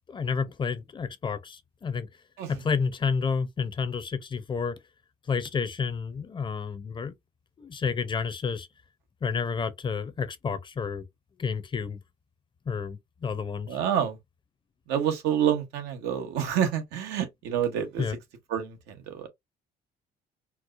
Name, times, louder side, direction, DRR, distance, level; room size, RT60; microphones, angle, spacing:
voice 1, 0.1-2.1 2.5-4.8 5.3-7.1 7.6-8.7 9.2-11.1 11.4-12.0 12.7-13.8 18.0-18.2, left 5 dB, 30° left, 0.5 m, -30 dB
voice 2, 13.7-14.2 14.9-18.0 18.5-19.3, right 9 dB, 90° right, 1.0 m, -28 dB
4.5 x 2.0 x 2.5 m
cardioid pair, 110°, 17 cm